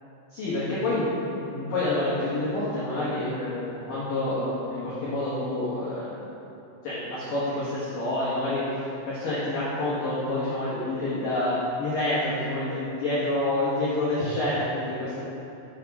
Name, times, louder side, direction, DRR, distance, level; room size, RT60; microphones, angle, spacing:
voice 1, 0.3-6.3 6.8-15.2, left 1 dB, 85° left, -10 dB, 1.9 m, -28 dB
7.2 x 4.6 x 5.4 m, 2.8 s
omnidirectional pair, 5.9 m